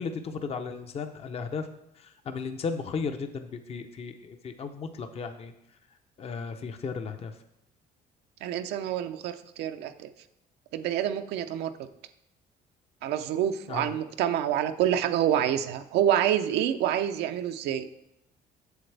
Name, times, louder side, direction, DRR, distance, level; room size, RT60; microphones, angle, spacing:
voice 1, 0.0-1.7 2.0-5.5 6.2-7.3 13.7-14.0, left 5 dB, 35° left, 7 dB, 0.6 m, -35 dB
voice 2, 8.4-10.1 10.7-11.7 13.0-17.9, right 10 dB, 80° right, 8 dB, 0.5 m, -27 dB
8.0 x 7.1 x 3.3 m, 0.81 s
cardioid pair, 110°, 17 cm